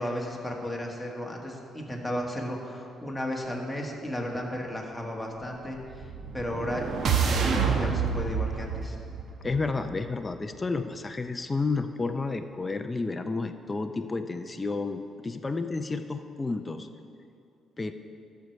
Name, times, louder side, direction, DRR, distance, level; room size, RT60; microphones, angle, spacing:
voice 1, 0.0-6.1 6.3-9.0, equal, 5° left, -1 dB, 1.6 m, -34 dB
sound 1, 5.9-10.1, right 6 dB, 60° right, 0.9 m, -28 dB
voice 2, 9.4-16.9 17.8-17.9, left 3 dB, 25° left, 7 dB, 0.5 m, -31 dB
12.5 x 4.6 x 6.6 m, 2.5 s
cardioid pair, 90°, 0 cm